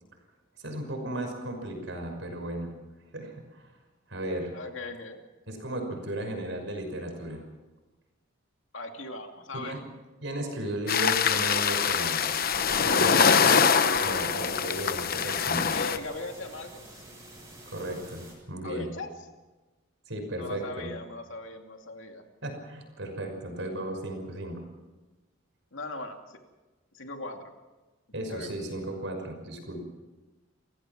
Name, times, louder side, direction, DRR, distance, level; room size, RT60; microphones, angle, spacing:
voice 1, 0.6-2.7 3.1-3.7 4.1-4.5 5.5-7.4 9.6-9.8 10.2-12.2 12.8-13.8 14.0-15.7 17.7-18.9 20.1-20.9 22.4-24.6 28.1-29.8, right 1 dB, 65° right, 4 dB, 5.9 m, -35 dB
voice 2, 4.5-5.2 8.7-9.8 15.7-17.0 18.6-19.1 20.4-22.2 25.7-26.4 26.9-27.5 28.3-28.5, left 2 dB, 70° left, 4 dB, 2.5 m, -40 dB
sound 1, 10.9-16.0, left 6 dB, 45° left, 1.0 m, -24 dB
sound 2, 12.2-18.3, right 1 dB, 15° right, 6.9 m, -48 dB
29.0 x 15.5 x 6.1 m, 1.2 s
head